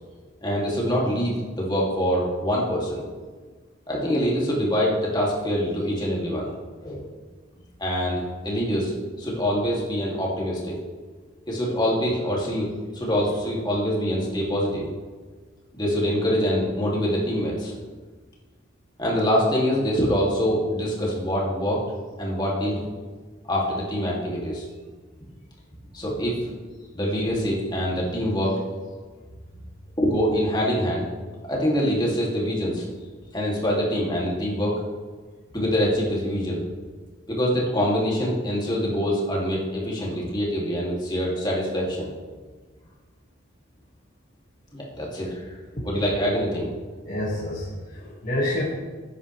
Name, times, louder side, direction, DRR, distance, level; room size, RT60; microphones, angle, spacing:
voice 1, 0.4-3.0 3.9-6.5 6.8-7.0 7.8-8.9 9.2-10.7 11.5-14.8 15.7-17.7 19.0-21.8 22.2-22.8 23.4-24.6 25.9-26.3 26.9-28.6 30.0-31.1 31.5-32.8 33.3-34.7 35.5-36.6 37.3-42.1 44.7-45.4 45.8-46.7, equal, 20° left, -4 dB, 2.6 m, -24 dB
voice 2, 47.0-48.6, left 1 dB, 45° left, -7 dB, 1.9 m, -28 dB
13.5 x 9.6 x 3.3 m, 1.4 s
head